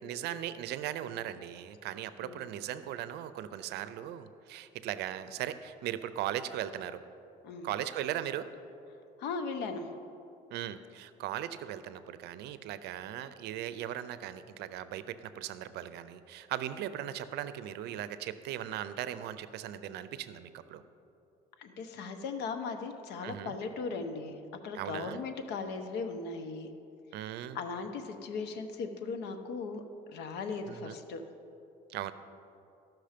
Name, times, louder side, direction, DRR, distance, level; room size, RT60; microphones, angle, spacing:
voice 1, 0.0-7.0 7.6-8.5 10.5-20.8 23.2-23.6 24.7-25.2 27.1-27.6 30.7-30.9 31.9-32.1, right 11 dB, 80° right, 13 dB, 0.5 m, -38 dB
voice 2, 9.2-9.9 21.6-26.7 27.5-29.8 30.1-31.2, left 4 dB, 85° left, 7 dB, 0.8 m, -38 dB
13.5 x 6.0 x 5.1 m, 2.7 s
cardioid pair, 110°, 17 cm